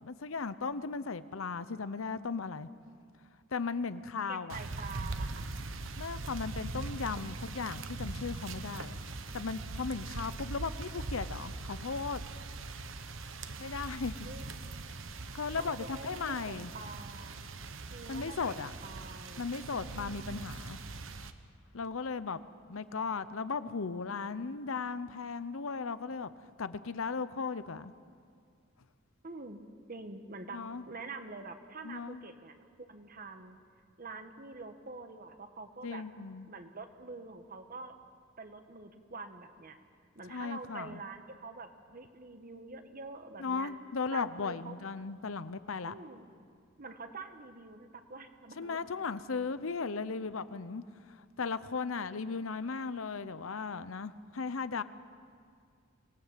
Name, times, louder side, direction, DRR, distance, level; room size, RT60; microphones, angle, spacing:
voice 1, 0.0-2.7 3.5-4.6 6.0-9.0 9.3-12.2 13.6-14.1 15.3-16.7 18.1-18.7 19.4-20.8 21.7-22.4 22.7-26.3 26.6-27.9 30.5-30.8 31.8-32.2 35.8-36.5 40.3-41.0 43.4-45.9 48.6-50.8 51.4-54.8, left 4 dB, 75° left, 14 dB, 0.8 m, -36 dB
voice 2, 4.3-5.5 9.3-9.7 14.2-14.6 15.5-17.4 17.9-19.5 19.7-20.4 29.2-32.6 32.9-33.6 34.0-36.0 36.5-37.9 38.4-39.8 40.1-43.7 44.1-44.7 45.9-46.3 46.8-49.2, right 3 dB, 45° right, 7 dB, 1.4 m, -46 dB
sound 1, 4.5-21.3, right 3 dB, 65° right, 1.1 m, -41 dB
25.5 x 19.0 x 7.5 m, 2.2 s
head